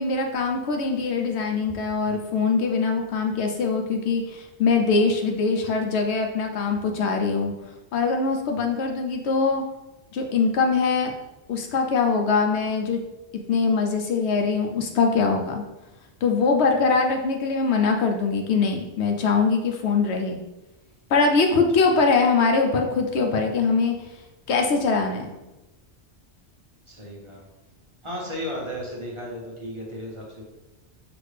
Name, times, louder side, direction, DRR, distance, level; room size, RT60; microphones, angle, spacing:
voice 1, 0.0-7.5 7.9-9.6 10.1-11.1 11.5-13.0 13.5-15.6 16.2-20.4 21.1-23.9 24.5-25.3, left 4 dB, 75° left, 3 dB, 0.9 m, -22 dB
voice 2, 26.9-27.4 28.0-30.4, equal, 30° right, -4 dB, 0.9 m, -35 dB
5.9 x 2.6 x 3.2 m, 1.0 s
omnidirectional pair, 1.2 m